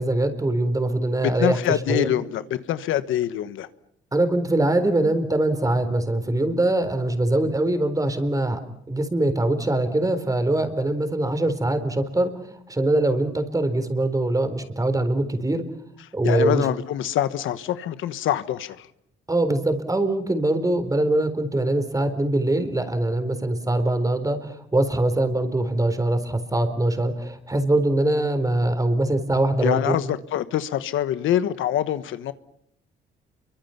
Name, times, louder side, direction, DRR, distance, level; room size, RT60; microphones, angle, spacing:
voice 1, 0.0-1.6 1.9-2.1 4.1-8.6 8.9-12.3 12.7-15.6 16.1-16.7 19.3-29.9, right 1 dB, 15° right, 4.0 m, -23 dB
voice 2, 1.2-3.7 16.2-18.9 29.6-32.3, left 11 dB, 80° left, 1.3 m, -25 dB
29.5 x 24.0 x 5.8 m
cardioid pair, 90°, 20 cm